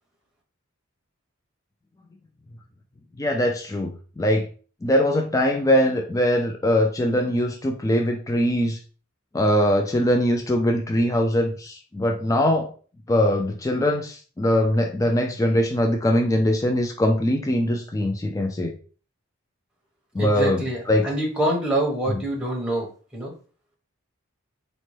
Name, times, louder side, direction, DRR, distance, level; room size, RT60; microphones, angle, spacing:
voice 1, 3.2-4.5 4.8-8.8 9.3-12.7 13.1-18.7 20.1-20.6 20.9-21.0, left 1 dB, 15° left, 3 dB, 0.3 m, -22 dB
voice 2, 20.2-23.3, right 1 dB, 5° right, -2 dB, 0.8 m, -26 dB
4.0 x 2.2 x 3.1 m, 0.39 s
head